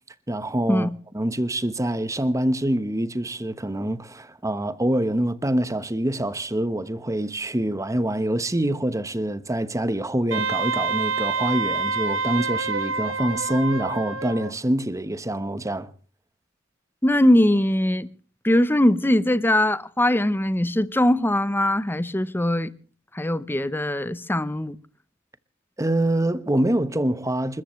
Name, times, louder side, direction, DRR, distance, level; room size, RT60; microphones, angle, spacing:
voice 1, 0.3-0.9 1.1-15.9 25.8-27.6, right 1 dB, 15° right, 1.0 m, -25 dB
Wind instrument woodwind instrument, 10.3-14.5, right 4 dB, 70° right, 1.5 m, -27 dB
voice 2, 17.0-18.1 18.4-22.7 23.1-24.8, left 1 dB, 10° left, 0.8 m, -21 dB
28.5 x 14.0 x 3.2 m
head